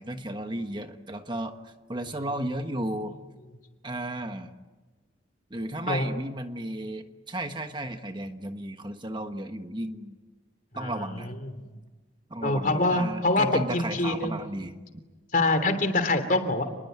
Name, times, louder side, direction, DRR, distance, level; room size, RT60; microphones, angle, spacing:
voice 1, 0.0-3.2 3.8-4.5 5.5-10.2 10.7-11.3 12.3-15.0, right 1 dB, 25° right, 7 dB, 1.3 m, -34 dB
voice 2, 10.7-11.3 12.4-14.4 15.3-16.6, left 2 dB, 45° left, 8 dB, 3.2 m, -25 dB
29.0 x 21.5 x 9.6 m, 1.3 s
head